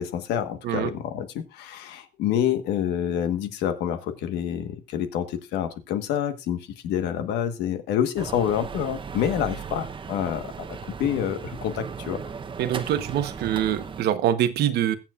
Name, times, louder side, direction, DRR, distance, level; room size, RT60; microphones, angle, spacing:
voice 1, 0.0-12.2, left 9 dB, 85° left, 1.3 m, -27 dB
sound 1, 8.2-14.0, right 6 dB, 30° right, 0.8 m, -36 dB
voice 2, 12.6-15.0, right 11 dB, 75° right, 1.0 m, -24 dB
21.0 x 7.3 x 2.4 m
cardioid pair, 110°, 17 cm